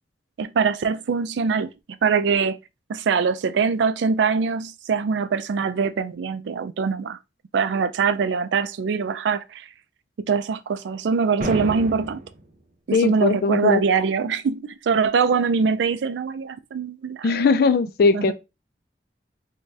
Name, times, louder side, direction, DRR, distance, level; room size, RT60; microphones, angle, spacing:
voice 1, 0.4-1.7 2.0-2.6 2.9-7.2 7.5-9.7 10.3-12.2 12.9-17.5 18.1-18.3, right 5 dB, 85° right, 0.4 m, -23 dB
sound 1, 11.4-12.4, right 1 dB, 50° right, 0.7 m, -30 dB
voice 2, 12.9-13.8 17.2-18.3, left 4 dB, 60° left, 0.3 m, -19 dB
4.7 x 2.2 x 2.6 m
head